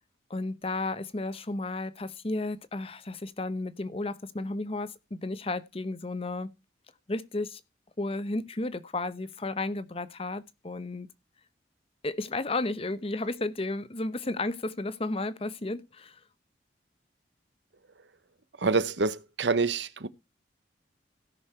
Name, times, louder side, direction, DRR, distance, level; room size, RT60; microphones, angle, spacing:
voice 1, 0.3-6.5 7.1-7.6 8.0-11.1 12.0-16.2, left 2 dB, 30° left, 0.9 m, -33 dB
voice 2, 18.6-20.1, right 4 dB, 80° right, 1.0 m, -27 dB
16.5 x 6.4 x 4.4 m
head